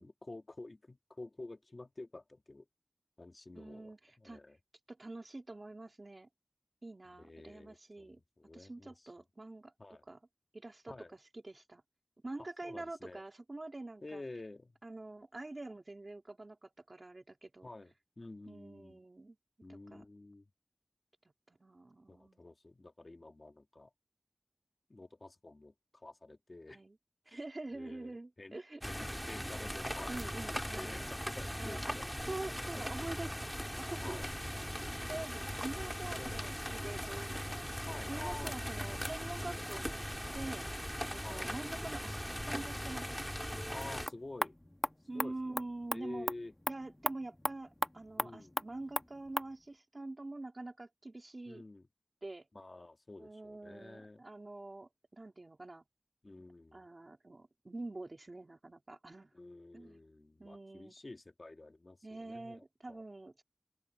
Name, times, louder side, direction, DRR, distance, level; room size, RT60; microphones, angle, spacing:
voice 1, 0.0-2.7 3.2-4.6 7.2-8.9 9.8-10.0 10.9-11.1 12.6-13.2 14.0-14.7 17.6-19.0 19.6-20.5 22.1-23.9 24.9-26.8 27.3-27.4 27.7-28.6 28.8-30.2 30.8-32.2 32.7-32.8 34.0-34.3 36.2-36.4 37.9-38.9 39.5-39.7 41.2-41.6 43.7-44.5 45.1-45.6 45.9-46.5 48.2-48.5 51.5-51.9 52.5-54.2 56.2-56.8 59.3-63.0, left 2 dB, 80° left, 1.8 m, -50 dB
voice 2, 3.5-4.4 4.9-6.3 6.8-8.2 8.5-9.7 10.0-10.2 10.5-10.9 11.3-11.8 12.2-14.2 14.8-17.7 18.5-19.4 19.7-20.0 21.5-22.4 26.7-27.0 27.3-28.8 30.1-31.1 31.6-31.9 32.3-33.5 33.8-34.3 34.7-37.7 38.1-40.1 40.3-40.7 41.1-43.5 45.1-46.3 46.7-51.6 52.2-52.5 53.2-55.8 56.7-59.3 59.7-60.0 60.4-60.9 62.0-63.4, right 2 dB, 80° right, 2.8 m, -46 dB
sound 1, 28.8-44.1, equal, 5° left, 1.9 m, -39 dB
sound 2, 43.8-49.5, left 1 dB, 30° left, 1.3 m, -39 dB
open air
wide cardioid pair, 45°, 0 cm